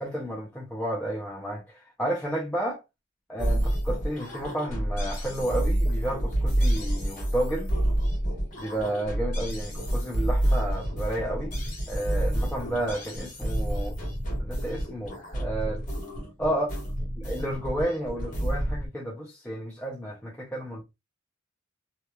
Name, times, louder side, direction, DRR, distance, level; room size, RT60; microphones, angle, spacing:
voice 1, 0.0-2.8 3.3-7.7 8.6-11.5 11.9-14.0 14.4-15.9 16.4-16.7 17.2-20.8, right 1 dB, 10° left, 0.6 m, -31 dB
sound 1, 3.4-18.9, right 1 dB, 40° left, 1.3 m, -28 dB
2.8 x 2.3 x 2.3 m
head